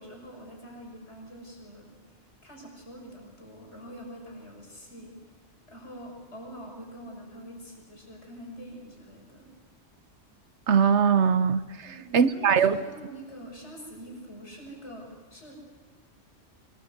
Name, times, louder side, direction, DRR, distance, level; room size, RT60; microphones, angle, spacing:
voice 1, 0.0-1.9 2.4-5.1 5.7-9.5 11.8-15.5, equal, 65° left, 6.4 m, -45 dB
voice 2, 10.7-12.8, right 6 dB, 70° right, 1.2 m, -22 dB
24.5 x 19.5 x 8.1 m
omnidirectional pair, 1.3 m